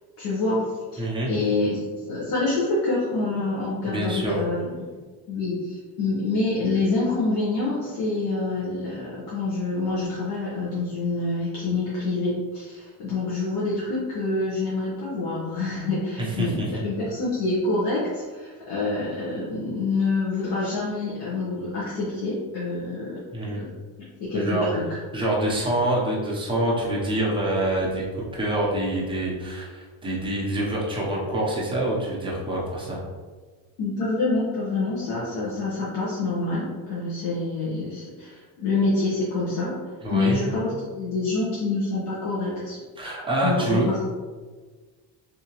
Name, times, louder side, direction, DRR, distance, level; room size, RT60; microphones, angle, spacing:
voice 1, 0.2-0.6 0.9-1.8 2.1-4.9 5.3-23.7 24.2-25.0 33.8-39.8 40.1-42.8 43.4-44.1, left 3 dB, 75° left, -8 dB, 1.0 m, -27 dB
voice 2, 1.0-1.3 3.8-4.4 16.2-16.8 23.3-23.6 24.3-24.7 25.1-28.0 28.3-33.0 40.0-40.4 43.0-43.9, right 1 dB, 10° right, -5 dB, 0.5 m, -26 dB
3.7 x 2.7 x 2.8 m, 1.4 s
cardioid pair, 170°, 42 cm